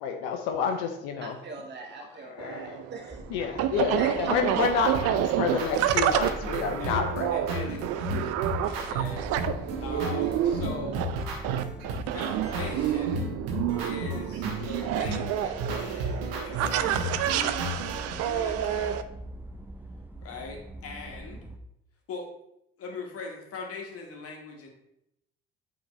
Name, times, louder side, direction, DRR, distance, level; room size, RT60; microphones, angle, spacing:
voice 1, 0.0-1.4 2.2-2.8 3.3-7.3 7.6-7.8, left 6 dB, 70° left, 5 dB, 0.8 m, -29 dB
voice 2, 1.2-3.2 4.0-4.8, right 3 dB, 35° right, 1 dB, 1.4 m, -40 dB
sound 1, 2.4-19.0, right 11 dB, 55° right, 0.5 m, -29 dB
sound 2, 3.1-21.6, right 1 dB, 5° right, 0.6 m, -43 dB
sound 3, 4.6-18.1, right 1 dB, 75° right, 1.2 m, -34 dB
voice 3, 7.3-9.3 9.8-11.1 12.1-13.2 13.8-19.0 20.2-21.4 22.1-22.3 22.8-24.7, left 3 dB, 50° left, 1 dB, 1.6 m, -41 dB
8.4 x 4.0 x 3.2 m, 0.80 s
hypercardioid pair, 55°, 29 cm